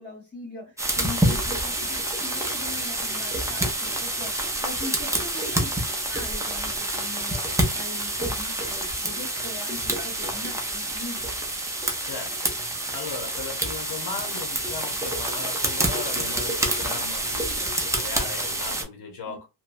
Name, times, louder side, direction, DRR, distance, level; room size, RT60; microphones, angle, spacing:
voice 1, 0.0-5.7 6.1-11.4 19.3-19.4, left 2 dB, 25° left, -6 dB, 1.0 m, -40 dB
sound 1, 0.8-18.8, right 1 dB, 10° right, 0.5 m, -27 dB
voice 2, 12.0-19.4, left 4 dB, 90° left, 2 dB, 1.0 m, -37 dB
2.9 x 2.2 x 2.5 m, 0.26 s
wide cardioid pair, 150°, 40 cm